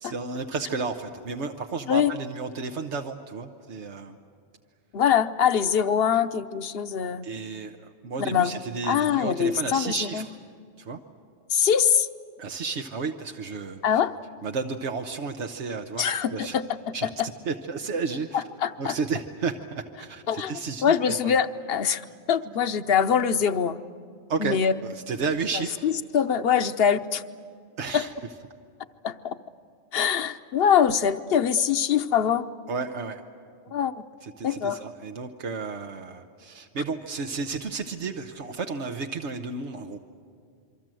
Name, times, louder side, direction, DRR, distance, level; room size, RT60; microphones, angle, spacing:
voice 1, 0.0-4.2 7.2-10.3 10.8-11.0 12.4-13.8 14.4-16.0 16.3-16.6 16.9-18.4 18.8-21.3 24.3-25.9 27.8-28.1 32.7-33.2 34.2-40.0, right 4 dB, 90° right, 4 dB, 1.4 m, -32 dB
voice 2, 4.9-7.2 8.3-8.5 8.8-10.3 11.5-12.1 13.8-14.1 16.0-17.3 18.3-19.0 20.3-20.5 20.8-23.8 24.4-24.7 25.5-27.2 27.9-28.0 29.0-29.3 29.9-32.5 33.7-33.9 34.4-34.8, left 8 dB, 60° left, 11 dB, 1.0 m, -23 dB
27.0 x 24.0 x 7.7 m, 2.3 s
omnidirectional pair, 1.2 m